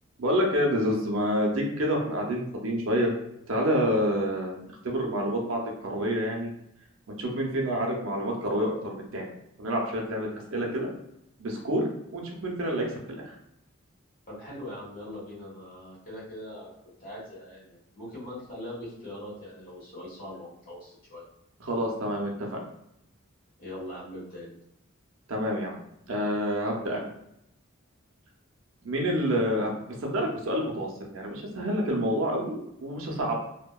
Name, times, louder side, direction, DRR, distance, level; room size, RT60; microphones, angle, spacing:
voice 1, 0.2-3.1 3.5-6.5 7.1-9.3 9.6-10.9 11.4-11.9 12.1-12.9 13.2-13.4 21.6-22.6 25.3-25.8 26.1-27.0 28.8-29.7 30.0-33.3, equal, 70° right, 0 dB, 0.5 m, -28 dB
voice 2, 14.3-21.2 23.6-24.6, left 1 dB, 45° left, -8 dB, 1.3 m, -41 dB
2.7 x 2.1 x 2.2 m, 0.79 s
head